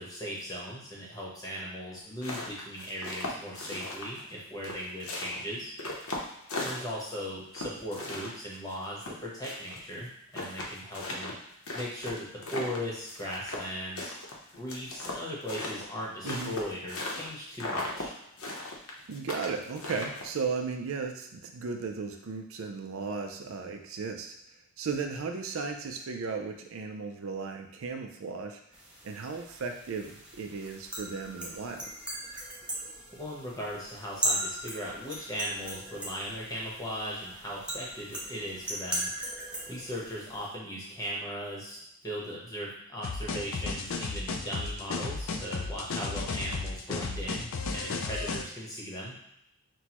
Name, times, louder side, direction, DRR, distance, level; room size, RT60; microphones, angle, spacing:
voice 1, 0.0-5.7 6.6-11.3 11.7-14.1 14.5-18.1 33.1-39.1 39.7-49.1, equal, 15° left, -4 dB, 0.9 m, -38 dB
sound 1, 2.0-4.3 4.6-7.2 7.5-9.8 10.1-10.2 10.3-13.7 14.0-17.3 17.5-18.1 18.4-20.4, left 2 dB, 80° left, 0.8 m, -37 dB
voice 2, 19.1-24.4 24.8-28.6 29.0-31.9, right 5 dB, 70° right, 5 dB, 0.4 m, -35 dB
sound 2, 28.7-40.5, right 1 dB, 5° right, 0.6 m, -38 dB
sound 3, 43.0-48.4, left 4 dB, 65° left, 0.4 m, -34 dB
6.0 x 2.2 x 2.9 m, 0.81 s
head